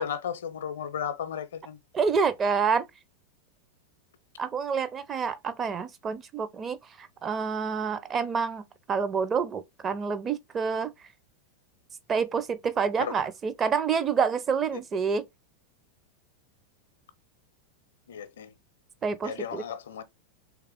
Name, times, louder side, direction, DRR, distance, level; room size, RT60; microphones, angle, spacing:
voice 1, 0.0-1.8 13.0-13.2 18.1-18.5 19.2-20.0, left 8 dB, 60° left, 0.6 m, -34 dB
voice 2, 1.9-2.9 4.4-10.9 12.1-15.2 19.0-19.6, right 6 dB, 25° right, 0.5 m, -28 dB
3.5 x 3.4 x 3.4 m
figure-of-eight pair, 90°, 0 cm